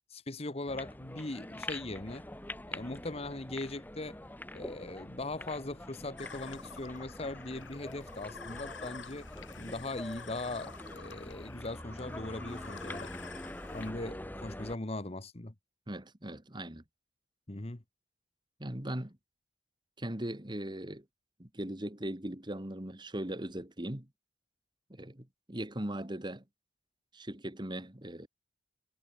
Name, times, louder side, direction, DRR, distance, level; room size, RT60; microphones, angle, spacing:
voice 1, 0.1-2.2 2.7-4.2 4.5-9.3 9.5-13.1 13.7-15.5 17.5-17.8, left 2 dB, 35° left, 1.3 m, -40 dB
sound 1, 0.7-14.8, left 1 dB, 10° left, 1.4 m, -45 dB
sound 2, 6.2-13.9, left 5 dB, 90° left, 3.4 m, -49 dB
voice 2, 15.9-16.8 18.6-19.2 20.0-21.0 21.4-24.1 24.9-26.4 27.1-28.3, right 1 dB, 25° right, 2.0 m, -39 dB
head